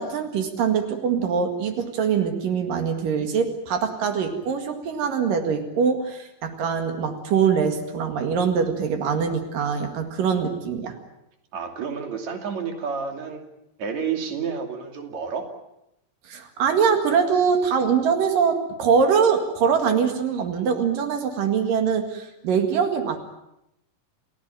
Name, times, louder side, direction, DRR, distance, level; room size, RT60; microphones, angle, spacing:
voice 1, 0.0-11.0 16.3-23.2, right 6 dB, 85° right, 5 dB, 3.7 m, -23 dB
voice 2, 11.5-13.4 13.8-15.5, right 6 dB, 55° right, 4 dB, 3.9 m, -30 dB
29.5 x 16.5 x 9.0 m, 0.85 s
omnidirectional pair, 3.8 m